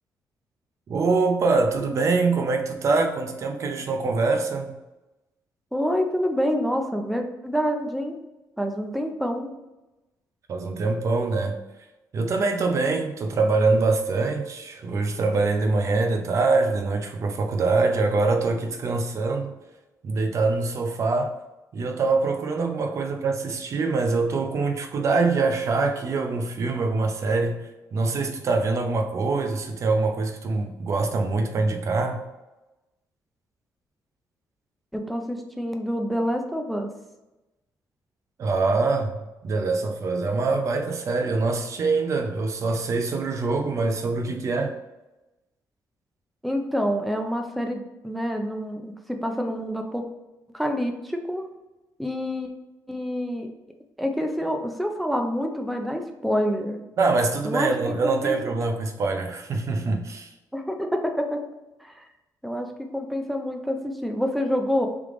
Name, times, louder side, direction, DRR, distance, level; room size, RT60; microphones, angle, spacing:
voice 1, 0.9-4.7 10.5-11.6 12.1-19.5 20.0-21.3 21.7-32.2 38.4-44.7 57.0-60.3, right 3 dB, 45° right, 5 dB, 0.6 m, -24 dB
voice 2, 5.7-8.2 8.6-9.5 34.9-36.9 46.4-50.0 50.5-51.5 52.0-52.5 52.9-53.5 54.0-56.8 57.4-57.7 58.0-58.4 60.5-61.5 61.8-62.1 62.4-64.9, equal, ahead, 3 dB, 0.4 m, -27 dB
3.4 x 3.3 x 3.7 m, 1.0 s
cardioid pair, 145°, 7 cm